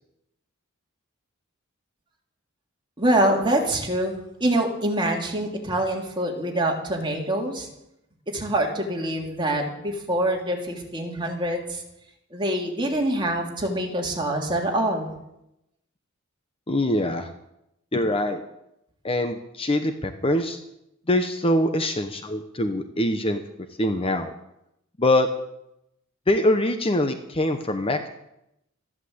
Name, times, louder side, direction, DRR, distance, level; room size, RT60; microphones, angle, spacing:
voice 1, 3.0-7.7 8.3-11.8 12.3-15.1, right 1 dB, 25° right, 0 dB, 3.1 m, -25 dB
voice 2, 16.7-17.3 17.9-18.4 19.0-20.6 21.1-23.4 23.8-24.3 25.0-25.3 26.3-28.1, left 1 dB, 25° left, 7 dB, 1.0 m, -23 dB
13.5 x 11.5 x 7.9 m, 0.84 s
head